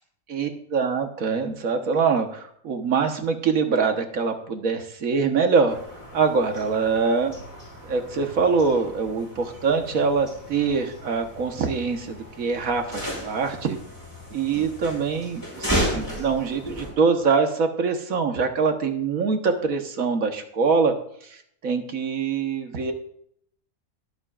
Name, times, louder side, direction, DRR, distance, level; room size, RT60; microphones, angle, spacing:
voice 1, 0.3-5.8 6.1-7.3 7.8-13.8 14.3-20.9 21.3-22.9, right 5 dB, 70° right, 5 dB, 1.6 m, -24 dB
sound 1, 5.7-16.9, equal, 15° left, 5.4 m, -34 dB
22.0 x 8.1 x 2.5 m, 0.68 s
omnidirectional pair, 1.5 m